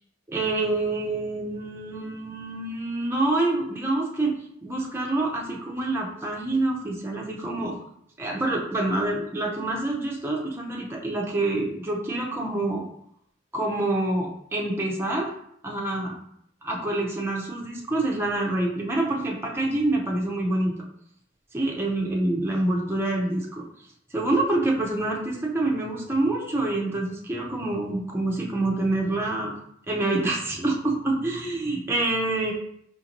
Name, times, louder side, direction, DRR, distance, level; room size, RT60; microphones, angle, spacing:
voice 1, 0.3-4.4 4.6-7.8 8.2-12.9 13.5-15.3 15.6-16.2 16.6-20.8 21.5-23.6 24.1-29.5 29.9-32.5, right 2 dB, 10° right, -2 dB, 0.5 m, -26 dB
5.0 x 2.6 x 2.9 m, 0.70 s
head